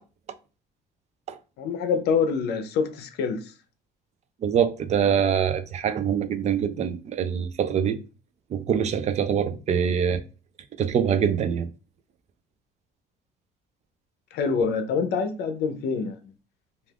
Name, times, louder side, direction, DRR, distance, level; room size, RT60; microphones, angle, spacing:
voice 1, 1.6-3.5 14.3-16.3, left 5 dB, 75° left, 0.5 m, -26 dB
voice 2, 4.4-8.0 8.5-10.2 10.8-11.7, right 8 dB, 40° right, 0.4 m, -24 dB
2.4 x 2.3 x 3.3 m
cardioid pair, 110°, 17 cm